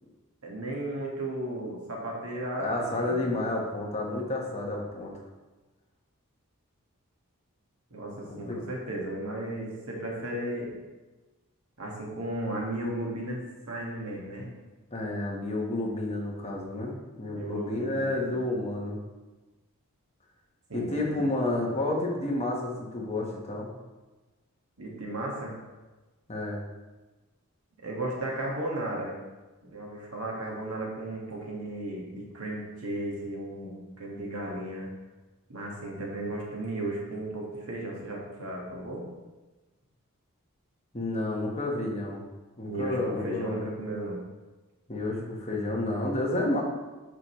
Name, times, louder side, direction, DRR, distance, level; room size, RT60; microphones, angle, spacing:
voice 1, 0.4-3.2 7.9-10.8 11.8-14.5 17.3-18.2 20.7-21.3 24.8-25.6 27.8-29.2 29.6-34.9 35.5-39.0 42.7-44.2, right 1 dB, 80° right, -2 dB, 1.7 m, -35 dB
voice 2, 2.6-5.1 8.5-8.6 14.9-19.0 20.7-23.7 26.3-26.6 40.9-42.2 42.6-43.7 44.9-46.6, left 2 dB, 30° left, -1 dB, 1.2 m, -30 dB
9.0 x 5.2 x 3.1 m, 1.2 s
head